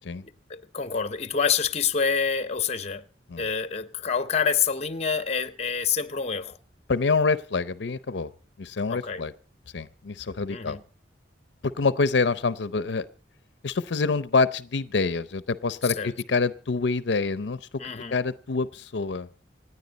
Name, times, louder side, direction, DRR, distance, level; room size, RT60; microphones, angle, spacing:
voice 1, 0.2-3.0 3.4-6.6 8.9-9.2 10.5-10.8 16.0-16.1 17.8-18.1, left 6 dB, 35° left, 0.8 m, -27 dB
voice 2, 6.9-8.3 8.6-9.3 9.7-10.8 11.6-13.1 13.6-17.7 18.1-19.3, left 4 dB, 70° left, 0.6 m, -26 dB
26.5 x 9.9 x 4.0 m
head